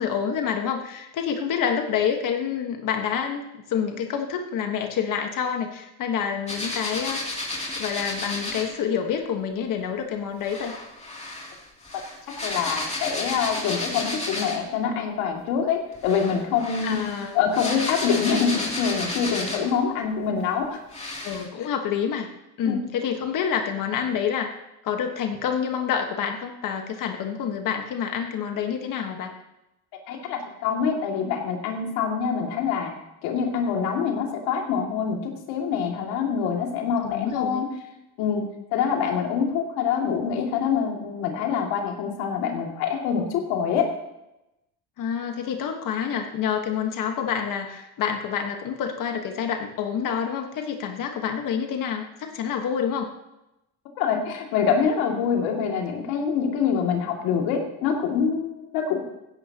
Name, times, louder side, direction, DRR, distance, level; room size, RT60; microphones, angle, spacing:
voice 1, 0.0-3.4 3.7-7.4 7.8-10.7 16.8-17.4 21.2-22.3 22.6-24.5 24.8-29.3 37.0-37.6 45.0-53.1, left 7 dB, 60° left, 4 dB, 1.5 m, -27 dB
sound 1, 6.5-8.7 10.4-14.7 15.9-19.8 20.4-20.5 20.9-21.5, left 2 dB, 20° left, 2.8 m, -32 dB
voice 2, 12.4-17.0 17.3-20.8 22.7-22.8 30.1-32.9 33.2-37.7 38.2-38.4 38.7-43.9 54.0-59.0, left 6 dB, 90° left, 1 dB, 2.5 m, -25 dB
15.5 x 11.0 x 2.9 m, 0.91 s
cardioid pair, 115°, 37 cm